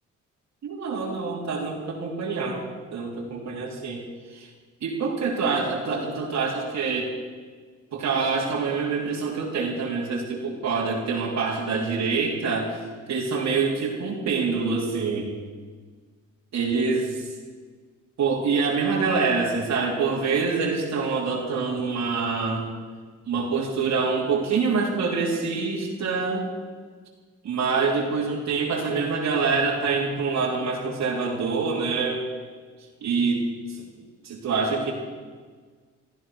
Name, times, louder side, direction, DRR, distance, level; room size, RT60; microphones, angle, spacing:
voice 1, 0.6-2.6 2.9-4.0 4.3-4.5 4.8-7.1 7.9-12.8 13.1-15.3 16.5-17.3 18.2-22.7 23.2-26.5 27.4-32.2 33.0-33.4 33.7-33.9 34.2-34.9, right 4 dB, 65° right, -4 dB, 3.4 m, -25 dB
15.0 x 14.5 x 6.2 m, 1.5 s
cardioid pair, 90°, 30 cm